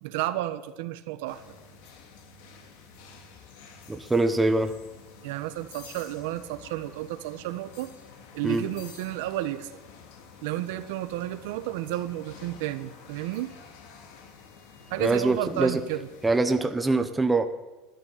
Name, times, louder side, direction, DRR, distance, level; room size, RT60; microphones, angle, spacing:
voice 1, 0.0-1.4 5.2-7.9 8.3-9.7 10.4-13.6 14.9-16.1, right 14 dB, 80° right, 10 dB, 1.1 m, -32 dB
sound 1, 1.3-16.4, left 5 dB, 75° left, 2.4 m, -50 dB
voice 2, 3.9-4.7 8.4-8.6 15.0-15.8 16.2-17.5, right 2 dB, 10° right, 7 dB, 1.0 m, -24 dB
13.0 x 11.5 x 8.6 m, 1.1 s
cardioid pair, 150°, 0 cm